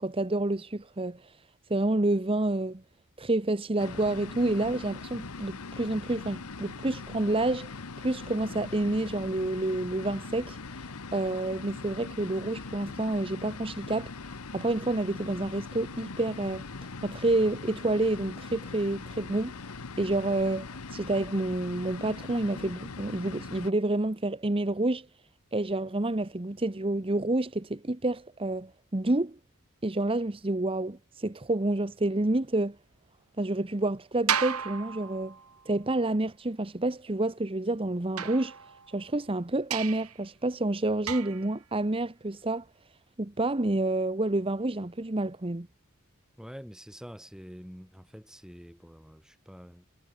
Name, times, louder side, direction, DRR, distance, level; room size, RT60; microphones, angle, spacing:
voice 1, 0.0-1.4 1.7-2.8 3.2-16.7 17.0-19.5 20.0-25.1 25.5-29.4 29.8-32.8 33.4-35.4 35.7-38.6 38.9-42.6 43.2-45.7, right 2 dB, 25° right, 0.9 m, -29 dB
sound 1, 3.8-23.7, left 4 dB, 85° left, 1.2 m, -41 dB
sound 2, 34.3-35.7 38.2-39.1 39.7-40.2 41.1-41.6, right 8 dB, 90° right, 2.7 m, -33 dB
voice 2, 46.4-49.9, equal, 5° right, 6.0 m, -46 dB
head